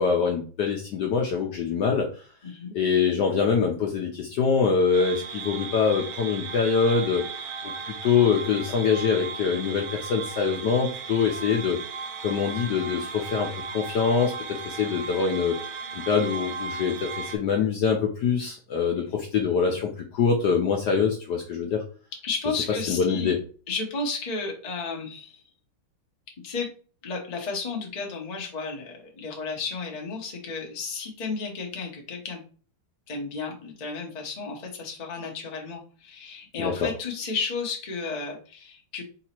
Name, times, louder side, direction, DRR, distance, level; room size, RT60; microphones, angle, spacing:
voice 1, 0.0-2.2 2.7-7.3 7.6-11.8 12.2-15.6 15.9-21.8 22.9-23.4 36.6-36.9, left 6 dB, 70° left, 1 dB, 1.0 m, -24 dB
voice 2, 2.4-2.7 22.2-23.3 23.7-25.4 26.4-26.7 27.0-32.4 33.1-39.0, left 4 dB, 35° left, 0 dB, 0.6 m, -33 dB
sound 1, 4.9-17.4, right 5 dB, 80° right, 1.6 m, -36 dB
4.0 x 2.8 x 4.3 m, 0.41 s
omnidirectional pair, 2.4 m